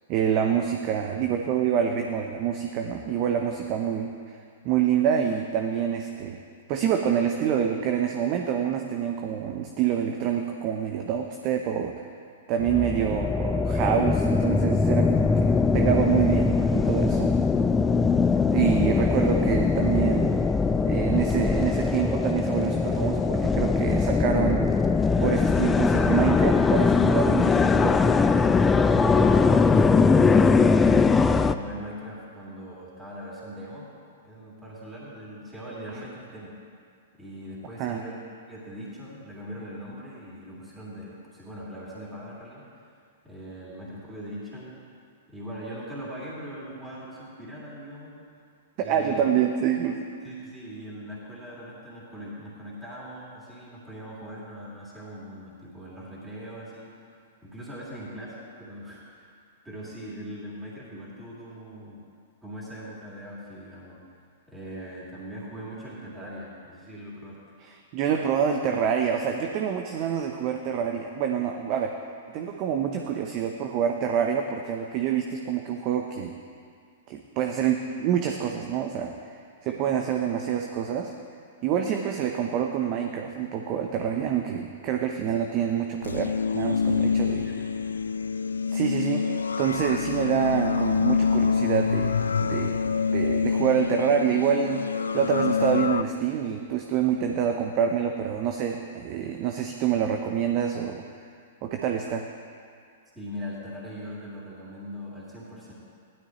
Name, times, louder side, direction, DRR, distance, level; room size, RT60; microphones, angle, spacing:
voice 1, 0.1-4.4 4.6-6.4 6.7-12.1 12.5-17.3 18.5-20.3 20.9-24.7 25.2-28.1 37.8-38.0 48.9-50.1 67.6-72.0 72.3-76.3 77.1-81.1 81.6-87.4 88.7-92.8 93.1-101.1 101.6-102.2, right 8 dB, 40° right, 4 dB, 0.8 m, -26 dB
sound 1, 12.6-31.6, left 4 dB, 15° left, 0.4 m, -21 dB
voice 2, 28.8-31.0 31.3-33.9 34.2-36.5 37.2-42.7 43.2-44.8 45.3-48.2 48.8-49.3 50.2-56.9 57.4-59.3 59.6-62.0 62.4-64.0 64.5-67.4 79.6-79.8 87.0-87.8 103.1-105.7, equal, 10° right, -7 dB, 3.1 m, -40 dB
sound 2, 86.0-96.0, left 5 dB, 80° left, 0.3 m, -26 dB
16.0 x 12.0 x 3.2 m, 2.2 s
figure-of-eight pair, 110°, 0 cm